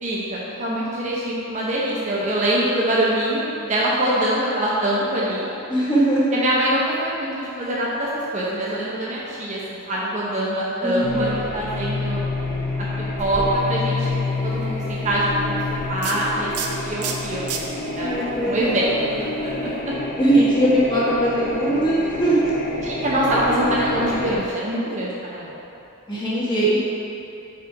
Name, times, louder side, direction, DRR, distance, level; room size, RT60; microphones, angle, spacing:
voice 1, 0.0-5.5 6.3-12.2 12.8-12.9 13.2-15.6 15.9-18.8 19.2-19.9 22.8-25.6, right 1 dB, 35° right, -6 dB, 0.7 m, -24 dB
voice 2, 5.7-6.2 10.8-11.4 18.0-19.0 20.2-22.5 26.1-26.8, right 1 dB, 20° left, -9 dB, 1.4 m, -20 dB
sound 1, 11.0-24.4, left 2 dB, 45° left, 0.9 m, -28 dB
sound 2, 13.2-19.8, right 5 dB, 90° right, 0.5 m, -35 dB
4.9 x 4.4 x 4.6 m, 2.9 s
head